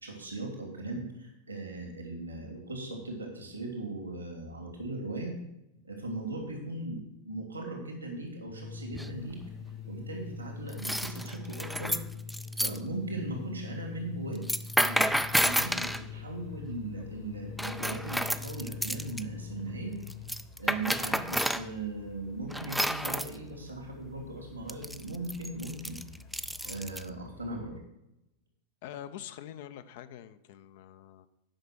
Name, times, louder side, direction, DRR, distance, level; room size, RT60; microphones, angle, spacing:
voice 1, 0.0-5.3 5.8-9.4 9.9-12.0 12.6-14.4 14.8-20.0 20.6-26.0 26.6-27.8, right 2 dB, 80° right, 1 dB, 2.6 m, -38 dB
sound 1, 8.5-20.3, left 6 dB, 70° left, 3.2 m, -43 dB
sound 2, 8.9-9.3 10.7-12.8 14.4-16.0 17.6-19.2 20.1-21.7 22.5-23.3 24.7-27.1, equal, ahead, 0.4 m, -30 dB
sound 3, 15.0-27.8, left 4 dB, 35° left, 1.1 m, -53 dB
voice 2, 28.8-31.3, left 11 dB, 50° left, 12 dB, 0.5 m, -45 dB
8.9 x 5.8 x 6.2 m, 0.87 s
figure-of-eight pair, 90°, 0 cm